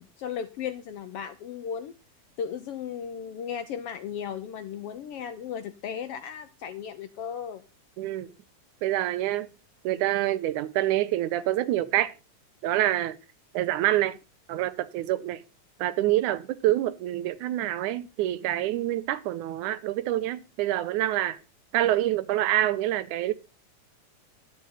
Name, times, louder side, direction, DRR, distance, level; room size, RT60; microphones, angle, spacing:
voice 1, 0.0-1.9 2.4-7.6, left 8 dB, 70° left, 1.4 m, -35 dB
voice 2, 8.0-8.3 8.8-9.5 9.8-12.1 12.6-13.2 13.5-14.2 14.5-15.4 15.8-21.4 21.7-23.3, right 14 dB, 90° right, 2.3 m, -26 dB
11.5 x 7.6 x 5.6 m
omnidirectional pair, 3.4 m